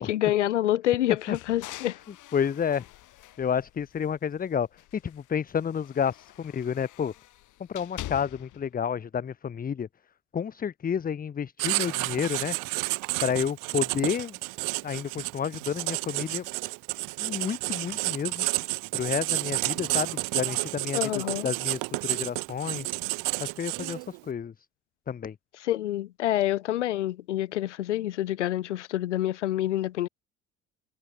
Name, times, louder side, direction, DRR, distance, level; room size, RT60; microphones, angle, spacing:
voice 1, 0.0-2.0 20.9-21.5 25.6-30.1, left 13 dB, 80° left, 1.3 m, -27 dB
sound 1, 1.2-4.3 4.7-8.7, left 15 dB, 60° left, 6.3 m, -45 dB
voice 2, 2.3-2.8 3.4-4.7 4.9-7.1 7.7-9.9 10.3-12.6 13.2-14.4 14.8-16.4 17.2-18.5 18.9-22.9 23.4-24.5 25.1-25.3, left 7 dB, 25° left, 0.8 m, -30 dB
Writing, 11.6-24.2, right 26 dB, 65° right, 1.8 m, -31 dB
figure-of-eight pair, 55°, 35 cm